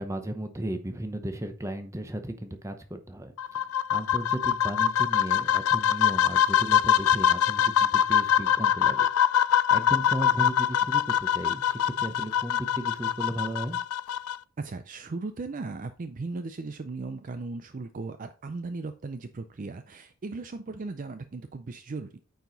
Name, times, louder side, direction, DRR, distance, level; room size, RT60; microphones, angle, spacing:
voice 1, 0.0-3.3 3.9-9.1 9.7-13.8, right 1 dB, 15° right, 8 dB, 0.8 m, -35 dB
sound 1, 3.4-14.4, left 9 dB, 85° left, 0.4 m, -24 dB
voice 2, 14.6-22.2, right 3 dB, 35° right, 9 dB, 0.4 m, -37 dB
9.2 x 4.6 x 4.0 m, 0.39 s
head